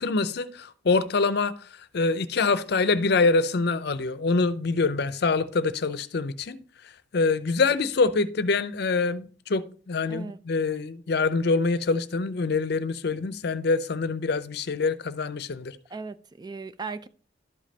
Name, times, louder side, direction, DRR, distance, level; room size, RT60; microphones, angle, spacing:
voice 1, 0.0-1.5 1.9-6.6 7.1-15.8, left 4 dB, 65° left, 0.6 m, -25 dB
voice 2, 15.9-17.1, right 4 dB, 25° right, 0.4 m, -37 dB
12.0 x 5.2 x 2.8 m
head